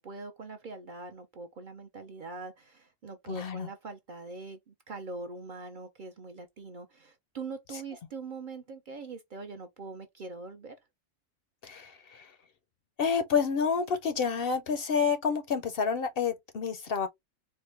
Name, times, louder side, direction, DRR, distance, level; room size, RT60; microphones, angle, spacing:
voice 1, 0.0-10.8, right 3 dB, 55° right, 0.6 m, -43 dB
voice 2, 3.3-3.7 11.6-12.3 13.0-17.1, left 6 dB, 60° left, 0.6 m, -29 dB
4.3 x 2.1 x 3.2 m
omnidirectional pair, 1.3 m